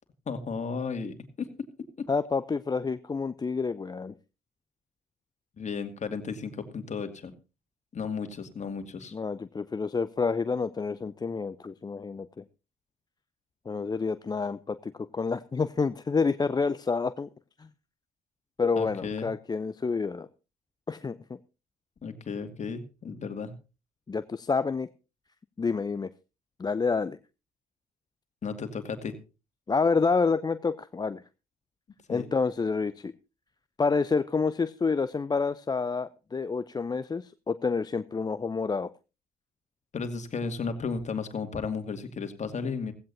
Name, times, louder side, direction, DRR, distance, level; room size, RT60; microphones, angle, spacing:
voice 1, 0.3-1.7 2.0-2.1 5.6-7.3 7.9-9.1 18.8-19.3 22.0-23.5 28.4-29.1 32.1-32.3 39.9-42.9, left 5 dB, 40° left, 7 dB, 2.3 m, -34 dB
voice 2, 2.1-4.1 9.1-12.4 13.7-17.3 17.6-17.7 18.6-20.3 20.9-21.4 24.1-24.9 25.6-26.1 26.6-27.2 29.7-31.2 32.1-33.1 33.8-38.9, left 4 dB, 20° left, 14 dB, 0.6 m, -28 dB
16.0 x 16.0 x 2.7 m, 0.30 s
hypercardioid pair, 50°, 19 cm